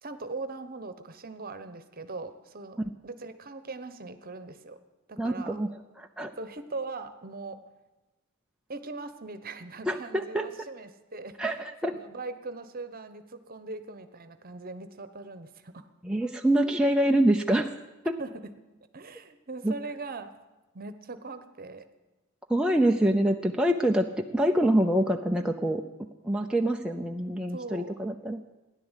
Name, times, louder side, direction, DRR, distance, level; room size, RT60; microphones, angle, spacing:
voice 1, 0.0-2.8 3.0-4.8 5.1-5.6 6.4-7.6 8.7-11.4 11.8-15.9 18.2-18.5 18.9-20.3 20.7-21.9 27.5-28.0, right 3 dB, 40° right, 11 dB, 1.1 m, -40 dB
voice 2, 5.2-5.7 6.0-6.3 9.9-10.5 11.4-11.9 16.0-17.7 18.0-18.1 19.6-19.7 22.5-25.8 26.2-28.4, right 1 dB, 5° right, 2 dB, 0.6 m, -25 dB
16.0 x 11.0 x 8.2 m, 1.1 s
head